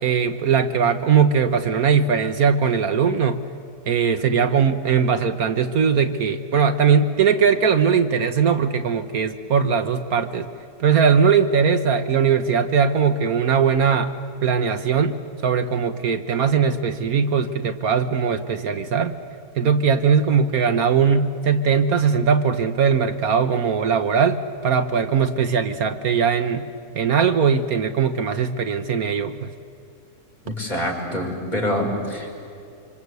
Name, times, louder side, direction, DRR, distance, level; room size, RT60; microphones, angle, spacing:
voice 1, 0.0-3.4 3.9-10.5 10.8-14.1 14.4-15.2 15.4-19.1 19.6-26.7 26.9-29.5, right 6 dB, 70° right, 9 dB, 1.4 m, -20 dB
voice 2, 30.5-32.3, left 1 dB, 25° left, -2 dB, 5.7 m, -26 dB
26.5 x 25.5 x 8.2 m, 2.6 s
omnidirectional pair, 1.7 m